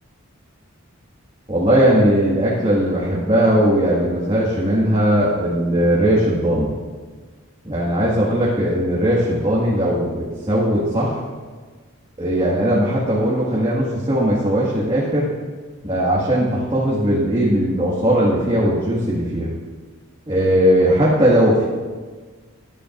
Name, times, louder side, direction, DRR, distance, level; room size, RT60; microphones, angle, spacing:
voice 1, 1.5-6.7 7.7-11.2 12.2-15.3 15.8-19.5 20.3-21.6, equal, 25° right, -7 dB, 1.9 m, -18 dB
20.5 x 10.5 x 2.6 m, 1.4 s
head